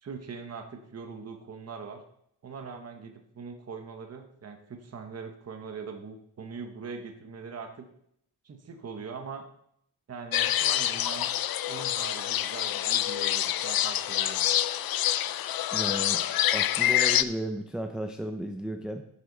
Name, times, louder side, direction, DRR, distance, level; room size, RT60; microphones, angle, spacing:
voice 1, 0.0-2.0 2.4-7.9 8.4-9.4 10.1-11.3 11.7-14.5, right 5 dB, 35° right, 5 dB, 1.0 m, -41 dB
sound 1, 10.3-17.2, left 12 dB, 60° left, 0.5 m, -26 dB
voice 2, 15.7-16.2 16.5-19.0, right 1 dB, ahead, 5 dB, 0.5 m, -34 dB
11.0 x 8.1 x 3.9 m, 0.71 s
wide cardioid pair, 165°, 41 cm